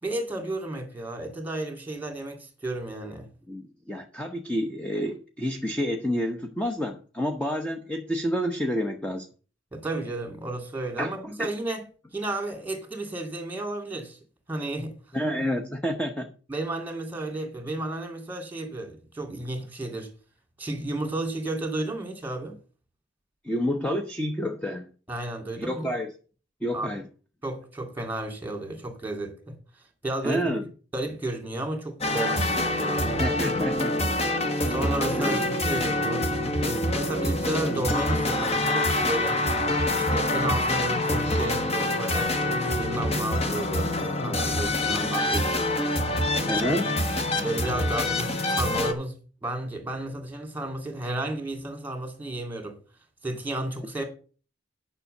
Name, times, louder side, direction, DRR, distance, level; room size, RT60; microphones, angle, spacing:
voice 1, 0.0-3.3 9.7-11.9 12.1-14.2 14.5-14.9 16.5-20.1 20.6-22.6 25.1-25.9 26.7-26.9 27.4-29.5 30.0-30.6 30.9-33.2 34.6-36.3 36.6-39.4 39.9-45.6 47.3-49.1 49.4-52.8 53.2-54.0, right 2 dB, 10° right, 2.4 m, -32 dB
voice 2, 3.5-9.3 11.0-11.1 11.4-11.5 15.1-16.3 23.4-24.9 25.6-26.1 26.6-27.1 30.2-30.7 33.2-34.0 35.2-35.4 46.5-46.9, equal, 5° left, 0.8 m, -29 dB
sound 1, 32.0-48.9, left 1 dB, 35° left, 1.2 m, -26 dB
9.9 x 6.0 x 6.5 m
head